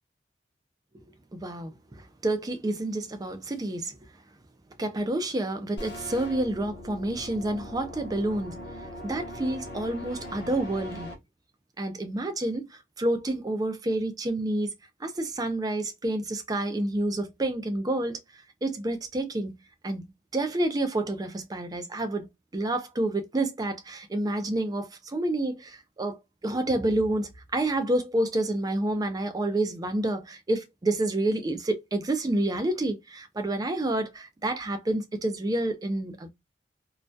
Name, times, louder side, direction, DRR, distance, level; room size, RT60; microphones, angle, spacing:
voice 1, 1.3-1.7 2.2-4.0 4.8-8.6 9.0-11.1 11.8-12.7 13.0-14.7 15.0-18.2 18.6-19.6 19.8-22.3 22.5-26.2 26.4-36.3, right 1 dB, 20° right, 0.4 m, -29 dB
sound 1, 5.8-11.1, equal, 70° left, 0.7 m, -40 dB
2.3 x 2.1 x 2.5 m
head